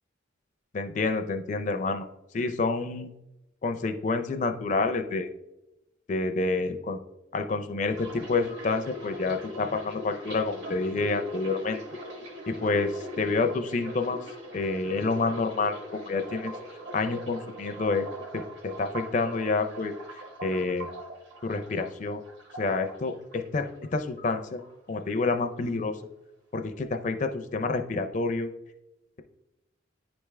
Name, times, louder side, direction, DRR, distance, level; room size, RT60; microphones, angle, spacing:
voice 1, 0.7-2.1 2.3-3.1 3.6-5.3 6.1-7.0 7.3-11.8 12.5-14.2 14.5-16.5 16.9-18.1 18.3-19.9 20.4-20.9 21.4-22.2 22.6-24.6 24.9-26.0 26.5-28.5, left 3 dB, 40° left, 6 dB, 0.4 m, -28 dB
sound 1, 7.9-23.9 24.2-25.1 25.3-25.7, equal, 65° right, 1.4 m, -42 dB
9.9 x 3.4 x 3.2 m, 0.94 s
head